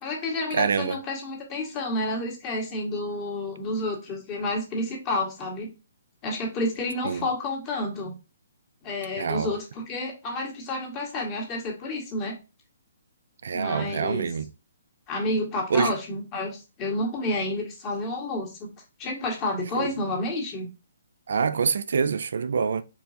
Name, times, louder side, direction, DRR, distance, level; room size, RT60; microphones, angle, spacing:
voice 1, 0.0-5.7 6.2-8.2 8.8-12.3 13.5-14.3 15.1-18.7 19.0-20.7, left 2 dB, 30° left, 1.8 m, -30 dB
voice 2, 0.5-1.0 7.0-7.2 9.2-9.5 13.4-14.5 15.7-15.9 19.8-19.9 21.3-22.8, right 6 dB, 65° right, 0.3 m, -25 dB
4.5 x 3.9 x 2.7 m
hypercardioid pair, 140°, 0 cm